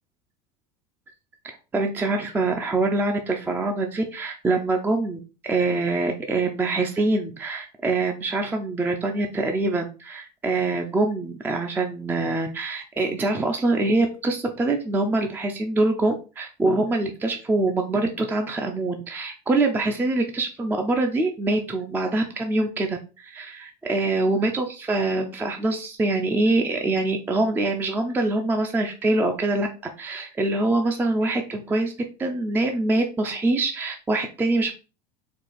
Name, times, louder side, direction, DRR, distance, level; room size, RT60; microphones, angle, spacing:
voice 1, 1.7-29.7 30.0-31.9 32.2-34.7, right 2 dB, 10° right, 4 dB, 0.4 m, -24 dB
4.2 x 2.3 x 4.6 m, 0.33 s
supercardioid pair, 145°, 21 cm